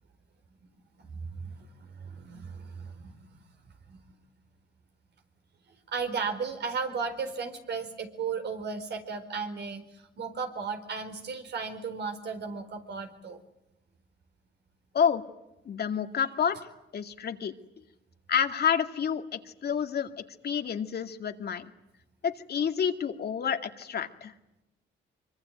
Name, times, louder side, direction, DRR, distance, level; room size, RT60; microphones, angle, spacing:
voice 1, 1.0-3.4 3.9-4.0 5.9-13.4, right 5 dB, 60° right, 6 dB, 4.4 m, -35 dB
voice 2, 15.7-16.6 16.9-17.5 18.3-21.7 22.2-24.3, left 7 dB, 55° left, 6 dB, 2.2 m, -29 dB
24.5 x 23.5 x 9.4 m, 0.89 s
cardioid pair, 90°, 20 cm